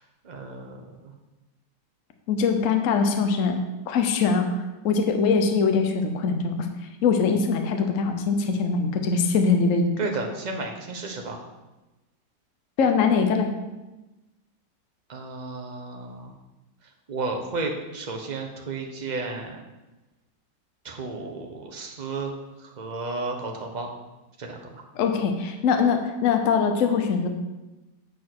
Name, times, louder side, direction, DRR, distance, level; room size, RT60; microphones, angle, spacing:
voice 1, 0.2-1.1 10.0-11.4 15.1-16.3 17.1-19.6 20.8-23.9 24.4-24.6, right 3 dB, 30° right, 2 dB, 0.9 m, -33 dB
voice 2, 2.3-3.6 3.9-6.7 7.0-9.9 12.8-13.5 24.9-27.3, left 5 dB, 55° left, 5 dB, 1.0 m, -22 dB
8.5 x 4.6 x 6.1 m, 1.1 s
omnidirectional pair, 1.9 m